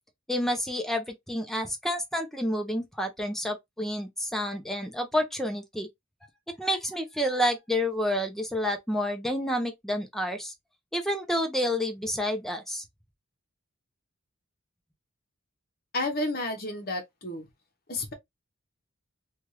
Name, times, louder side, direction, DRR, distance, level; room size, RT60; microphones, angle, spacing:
voice 1, 0.3-5.9 6.6-10.5 10.9-12.8, equal, ahead, 0.6 m, -29 dB
voice 2, 15.9-17.5 17.9-18.1, left 2 dB, 45° left, 1.0 m, -31 dB
3.4 x 2.4 x 3.0 m
head